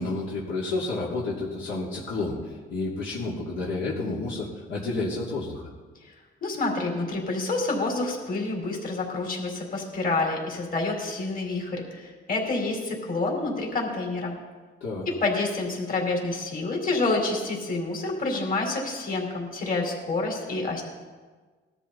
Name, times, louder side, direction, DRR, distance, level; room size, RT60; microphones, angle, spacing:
voice 1, 0.0-5.7 14.8-15.1, left 2 dB, 80° left, -5 dB, 3.1 m, -30 dB
voice 2, 6.4-14.4 15.1-20.8, left 3 dB, 45° left, 0 dB, 4.5 m, -28 dB
20.0 x 13.0 x 4.2 m, 1.4 s
cardioid pair, 90°, 20 cm